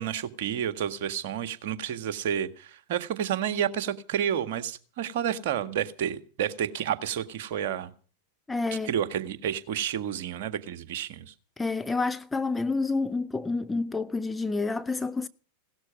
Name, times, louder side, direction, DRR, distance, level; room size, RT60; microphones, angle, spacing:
voice 1, 0.0-7.9 8.8-11.3, right 9 dB, 50° right, 1.7 m, -30 dB
voice 2, 8.5-8.9 11.6-15.3, left 3 dB, 10° left, 0.7 m, -29 dB
17.5 x 13.5 x 6.0 m
figure-of-eight pair, 90°, 0 cm